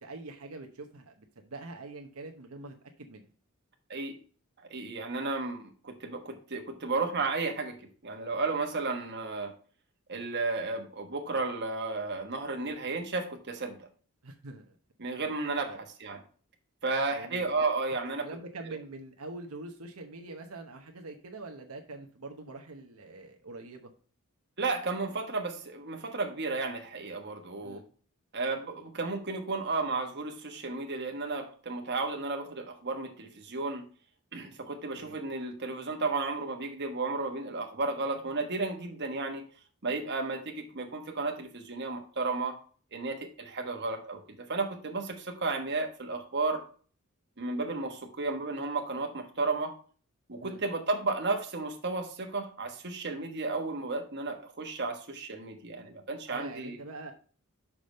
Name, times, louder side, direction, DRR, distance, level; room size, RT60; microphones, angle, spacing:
voice 1, 0.0-3.2 14.2-14.8 15.6-15.8 17.1-17.5 18.2-23.9 27.6-27.9 34.9-35.2 50.4-50.6 56.3-57.1, right 2 dB, 85° right, 4 dB, 0.9 m, -44 dB
voice 2, 4.7-7.8 8.0-9.5 10.1-13.9 15.0-16.2 16.8-18.3 18.7-18.8 24.6-27.8 28.3-33.8 34.3-39.5 39.8-42.6 42.9-46.6 47.4-49.7 50.3-56.8, right 3 dB, 50° right, 4 dB, 1.3 m, -33 dB
6.0 x 5.0 x 5.3 m, 0.42 s
head